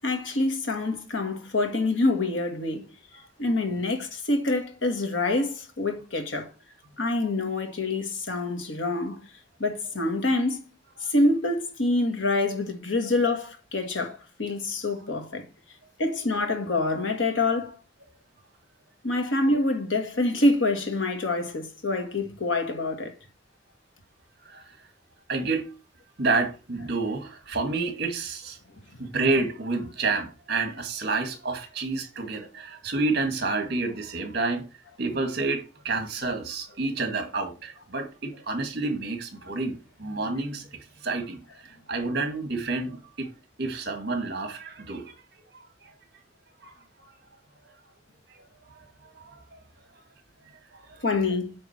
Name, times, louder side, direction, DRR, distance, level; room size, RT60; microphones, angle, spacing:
voice 1, 0.0-2.9 3.4-6.5 7.0-9.2 9.6-10.6 11.0-15.4 16.0-17.8 19.0-23.1 51.0-51.5, left 2 dB, 80° left, 1.8 m, -26 dB
voice 2, 25.3-25.7 26.2-28.6 29.0-34.7 35.0-41.4 41.7-43.3 43.6-45.1 46.6-46.8 48.3-48.4 49.2-49.6 50.7-51.3, right 3 dB, 55° right, 1.8 m, -29 dB
8.8 x 3.6 x 6.0 m
head